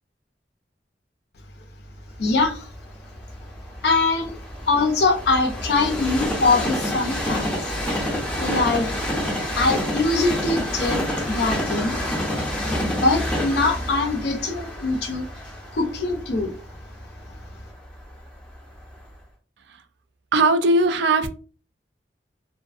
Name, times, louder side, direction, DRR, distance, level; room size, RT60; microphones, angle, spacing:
voice 1, 2.2-2.7 3.8-4.4 4.7-7.7 8.4-8.9 9.6-12.0 12.8-15.3 15.7-16.6, left 3 dB, 65° left, 0.5 m, -23 dB
Train, 2.4-18.3 18.9-19.0, left 1 dB, 5° left, 0.6 m, -28 dB
voice 2, 20.3-21.3, right 2 dB, 75° right, 0.4 m, -18 dB
2.5 x 2.4 x 2.4 m
head